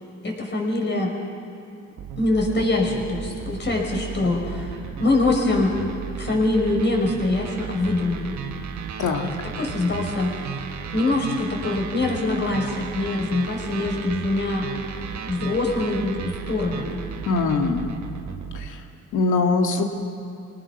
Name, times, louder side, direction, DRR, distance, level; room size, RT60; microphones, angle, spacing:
voice 1, 0.2-1.1 2.2-4.7 5.0-5.8 6.2-8.4 9.6-10.6 10.9-14.7 15.3-17.0, left 2 dB, 35° left, 0 dB, 5.7 m, -24 dB
sound 1, 2.0-18.7, right 7 dB, 70° right, 1.5 m, -34 dB
voice 2, 9.0-9.3 17.3-17.9 18.5-18.8 19.1-19.8, left 3 dB, 80° left, 3 dB, 2.4 m, -22 dB
26.5 x 18.5 x 6.0 m, 2.8 s
cardioid pair, 90°, 30 cm